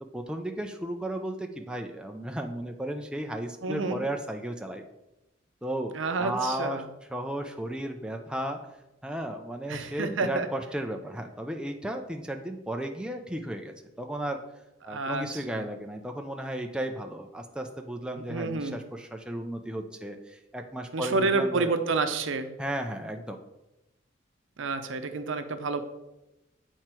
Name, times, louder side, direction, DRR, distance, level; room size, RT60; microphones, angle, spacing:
voice 1, 0.1-4.8 5.6-6.8 7.1-8.6 9.0-14.4 14.8-21.7 22.6-23.4, right 1 dB, 5° right, 3 dB, 0.4 m, -34 dB
voice 2, 3.6-4.0 5.9-6.8 9.7-10.5 14.9-15.7 18.2-18.8 20.9-22.5 24.6-25.8, right 3 dB, 75° right, 8 dB, 0.7 m, -29 dB
7.8 x 4.5 x 4.4 m, 0.97 s
head